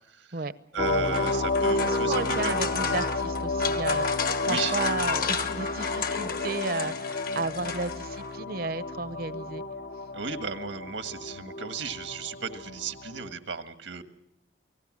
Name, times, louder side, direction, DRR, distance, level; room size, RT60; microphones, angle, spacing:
voice 1, 0.1-0.4 0.7-2.5 4.4-4.8 10.1-14.0, right 5 dB, 85° right, 8 dB, 1.6 m, -35 dB
sound 1, 0.7-8.4, left 5 dB, 50° left, 1.2 m, -32 dB
sound 2, 0.8-13.3, left 2 dB, 70° left, 1.3 m, -31 dB
voice 2, 1.8-9.6, right 3 dB, 50° right, 15 dB, 0.8 m, -33 dB
29.0 x 19.0 x 6.2 m, 0.77 s
head